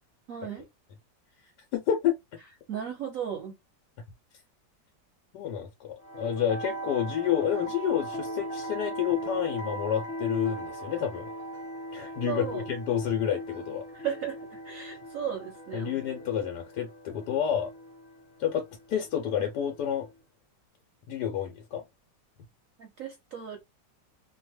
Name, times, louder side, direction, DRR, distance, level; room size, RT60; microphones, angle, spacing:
voice 1, 0.3-0.7 2.7-3.5 12.3-12.6 13.9-16.0 22.8-23.6, right 8 dB, 65° right, 0.9 m, -35 dB
voice 2, 1.7-2.4 5.3-11.3 11.9-13.9 15.7-17.7 18.4-20.1 21.1-21.8, left 9 dB, 75° left, 1.2 m, -29 dB
sound 1, 6.0-20.1, right 1 dB, 40° left, 1.0 m, -39 dB
2.8 x 2.2 x 2.9 m
omnidirectional pair, 1.9 m